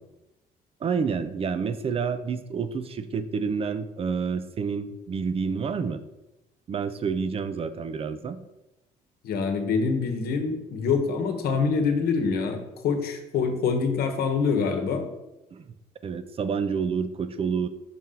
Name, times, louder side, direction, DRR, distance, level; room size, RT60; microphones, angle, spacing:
voice 1, 0.8-6.0 6.7-8.4 15.5-15.7 16.0-17.7, right 6 dB, 35° right, 11 dB, 0.5 m, -29 dB
voice 2, 9.2-15.1, left 5 dB, 65° left, 6 dB, 1.0 m, -25 dB
5.8 x 4.2 x 3.8 m, 0.95 s
cardioid pair, 110°, 17 cm